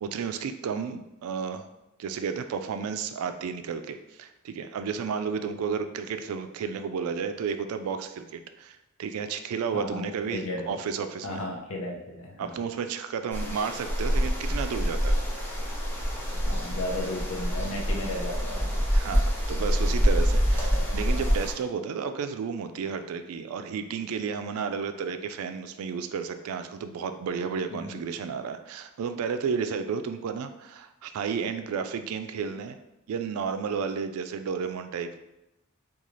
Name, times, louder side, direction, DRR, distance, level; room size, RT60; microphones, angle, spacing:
voice 1, 0.0-1.7 2.0-11.4 12.4-15.2 18.9-32.8 33.1-35.2, right 6 dB, 90° right, 8 dB, 0.3 m, -32 dB
voice 2, 9.7-10.8 11.2-12.6 16.4-18.8 27.7-28.0, left 1 dB, 75° left, 1 dB, 0.7 m, -35 dB
sound 1, 13.3-21.5, equal, 10° left, 0.6 m, -26 dB
3.8 x 2.3 x 3.1 m, 0.93 s
head